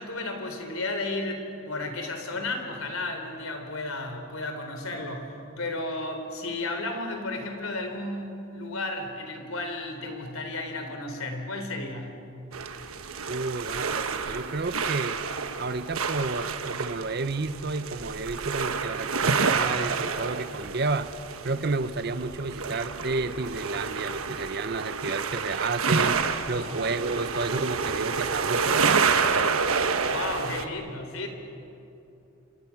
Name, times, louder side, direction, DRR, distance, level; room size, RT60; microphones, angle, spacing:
voice 1, 0.0-12.1 26.6-26.8 30.0-31.3, left 2 dB, 85° left, 5 dB, 3.6 m, -33 dB
sound 1, 12.5-30.6, right 5 dB, 90° right, 1.3 m, -29 dB
voice 2, 13.3-15.2 15.6-21.1 21.4-29.6, right 3 dB, 50° right, 12 dB, 0.7 m, -31 dB
29.0 x 27.0 x 6.0 m, 2.8 s
head